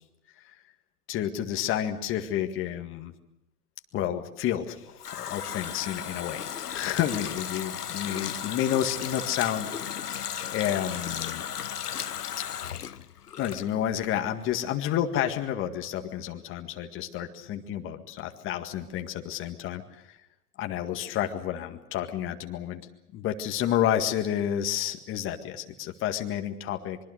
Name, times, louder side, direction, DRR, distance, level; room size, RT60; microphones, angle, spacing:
voice 1, 1.1-3.1 3.9-4.9 5.1-10.0 10.5-11.4 12.4-12.5 13.4-20.0 20.6-22.8 23.1-27.0, left 11 dB, 25° left, 5 dB, 1.9 m, -30 dB
Water tap faucet, 4.5-14.1 14.4-14.5, left 9 dB, 85° left, 0.9 m, -35 dB
25.0 x 23.0 x 6.6 m, 0.85 s
hypercardioid pair, 110°, 45 cm